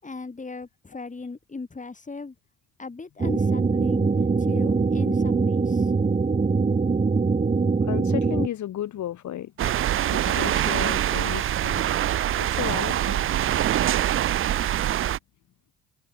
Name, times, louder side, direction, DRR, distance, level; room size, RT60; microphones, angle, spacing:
voice 1, 0.0-2.3 2.8-5.9, left 3 dB, 25° left, 6.4 m, -37 dB
sound 1, 3.2-8.5, right 4 dB, 25° right, 1.3 m, -22 dB
voice 2, 7.8-9.8 10.1-13.6, left 12 dB, 70° left, 2.6 m, -34 dB
sound 2, 9.6-15.2, right 12 dB, 45° right, 0.4 m, -24 dB
cardioid pair, 90°, 30 cm